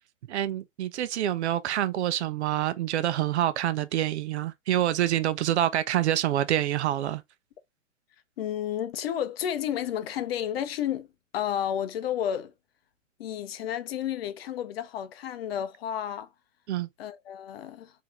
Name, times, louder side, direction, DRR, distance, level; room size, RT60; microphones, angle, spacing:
voice 1, 0.3-7.2 16.7-16.9, right 12 dB, 60° right, 0.7 m, -26 dB
voice 2, 8.4-11.1 11.3-12.5 13.2-16.3 17.0-17.9, left 10 dB, 50° left, 0.7 m, -31 dB
4.6 x 2.9 x 2.9 m
hypercardioid pair, 120°, 39 cm